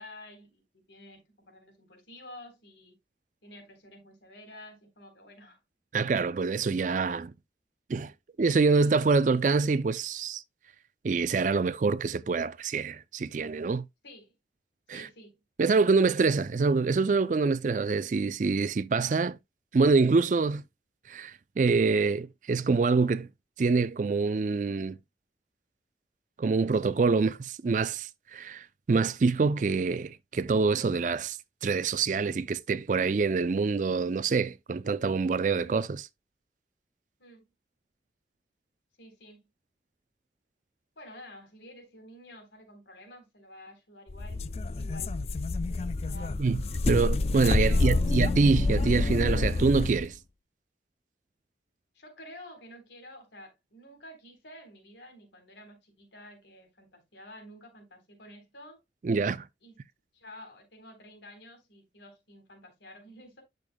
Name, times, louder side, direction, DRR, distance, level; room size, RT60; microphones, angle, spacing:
voice 1, 0.0-3.0 3.4-5.6 14.0-14.3 14.9-15.4 35.6-35.9 37.2-37.5 39.0-39.5 41.0-45.1 45.6-46.4 47.5-48.4 51.9-58.8 59.6-59.8 60.1-63.4, left 1 dB, 85° left, 3.7 m, -50 dB
voice 2, 5.9-7.3 7.9-8.1 8.4-10.4 11.0-13.8 14.9-15.1 15.6-19.4 19.7-20.6 21.1-23.3 23.6-25.0 26.4-36.1 46.4-46.6 46.9-50.2 59.0-59.5, right 4 dB, 45° right, 0.4 m, -26 dB
sound 1, 44.1-50.1, left 3 dB, 35° left, 0.4 m, -28 dB
10.5 x 6.7 x 2.2 m
head